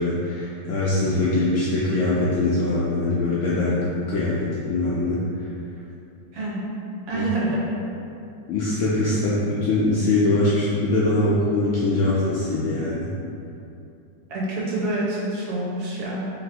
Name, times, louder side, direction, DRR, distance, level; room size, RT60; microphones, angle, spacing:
voice 1, 0.0-3.7 4.1-5.2 7.1-7.2 8.5-13.1, left 2 dB, 85° left, -7 dB, 0.6 m, -22 dB
voice 2, 7.1-7.6 14.3-16.3, right 2 dB, 65° right, -6 dB, 1.3 m, -27 dB
3.1 x 2.9 x 4.4 m, 2.7 s
omnidirectional pair, 1.9 m